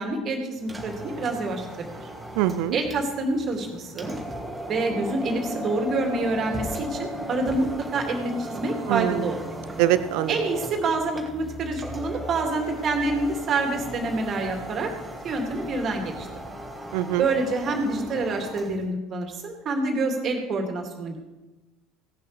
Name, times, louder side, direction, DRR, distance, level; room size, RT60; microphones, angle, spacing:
voice 1, 0.0-2.1 2.7-4.1 4.7-9.4 10.3-14.9 15.2-16.3 17.2-21.2, right 2 dB, 40° right, 3 dB, 2.6 m, -27 dB
sound 1, 0.6-18.8, right 1 dB, 10° right, 2.4 m, -37 dB
voice 2, 2.4-2.8 8.9-9.3 9.8-10.4 16.9-17.2, right 13 dB, 60° right, 13 dB, 0.7 m, -23 dB
17.0 x 11.0 x 3.4 m, 1.1 s
figure-of-eight pair, 65°, 0 cm